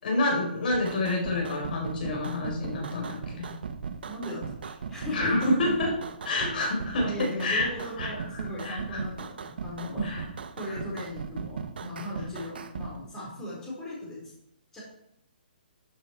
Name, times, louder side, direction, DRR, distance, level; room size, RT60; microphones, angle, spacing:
voice 1, 0.0-3.5 5.1-5.9 6.2-9.0 10.0-10.2 10.7-10.8, left 2 dB, 60° left, 0 dB, 4.4 m, -28 dB
sound 1, 0.7-12.9, right 5 dB, 70° right, 1.0 m, -38 dB
voice 2, 4.1-5.7 7.0-10.1 10.6-14.2 14.7-14.8, left 1 dB, 10° left, -6 dB, 4.3 m, -36 dB
12.5 x 7.2 x 4.7 m, 0.76 s
hypercardioid pair, 155°, 6 cm